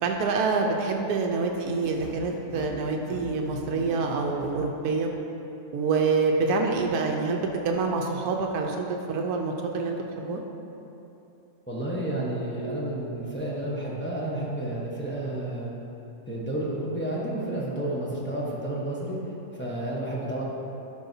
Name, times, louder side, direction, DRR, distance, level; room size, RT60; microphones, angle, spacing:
voice 1, 0.0-5.1 5.7-10.4, right 4 dB, 85° right, 2 dB, 1.1 m, -26 dB
sound 1, 1.8-4.6, left 1 dB, 40° left, 1.1 m, -41 dB
voice 2, 11.7-15.8 16.3-19.2 19.5-20.4, right 1 dB, 10° left, -6 dB, 0.8 m, -31 dB
11.5 x 5.5 x 2.7 m, 3.0 s
omnidirectional pair, 1.6 m